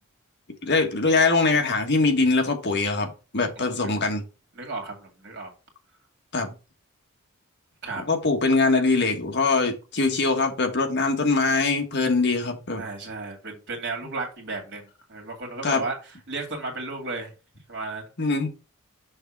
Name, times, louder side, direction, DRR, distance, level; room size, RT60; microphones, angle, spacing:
voice 1, 0.6-4.2 6.3-6.5 8.0-12.8 15.6-15.8 18.2-18.5, left 3 dB, 50° left, 1.4 m, -22 dB
voice 2, 3.6-3.9 4.6-5.5 7.8-8.2 12.8-16.0 16.3-17.3 17.7-18.1, right 3 dB, 55° right, 2.5 m, -34 dB
6.4 x 3.5 x 6.1 m
head